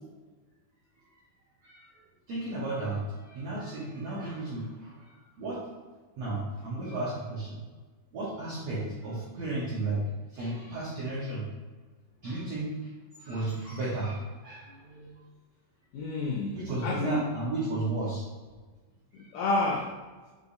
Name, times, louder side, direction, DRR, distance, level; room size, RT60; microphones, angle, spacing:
voice 1, 2.3-5.6 6.2-7.6 8.1-10.0 10.3-11.4 12.2-12.9 13.2-15.2 16.5-18.3 19.1-19.3, right 2 dB, 90° right, -7 dB, 1.4 m, -34 dB
voice 2, 8.9-9.2 15.9-17.3 19.1-19.9, left 2 dB, 90° left, -2 dB, 1.8 m, -30 dB
6.6 x 2.5 x 2.6 m, 1.3 s
omnidirectional pair, 4.3 m